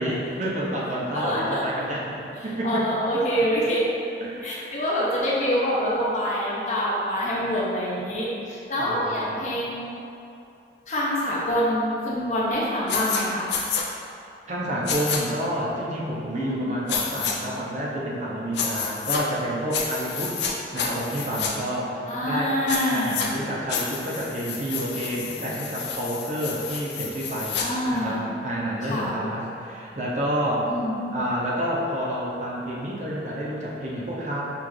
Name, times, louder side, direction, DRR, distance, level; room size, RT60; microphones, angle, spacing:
voice 1, 0.0-3.0 3.4-3.5 4.2-4.7 8.8-9.4 14.5-20.4 20.7-22.5 22.9-27.6 27.9-30.7 31.1-34.4, equal, 40° right, -5 dB, 0.6 m, -29 dB
voice 2, 1.1-1.6 2.6-3.8 4.4-10.0 10.9-13.5 16.4-16.7 22.1-23.3 27.6-28.3 28.8-29.1 30.6-31.2, equal, 40° left, -6 dB, 0.7 m, -26 dB
sound 1, 12.9-13.2 13.5-13.8 14.9-15.2 16.9-17.3 18.5-19.2 19.7-20.5 20.8-21.5 22.7-23.3 23.7-27.7, left 6 dB, 80° left, 0.5 m, -29 dB
5.8 x 2.4 x 3.2 m, 2.6 s
head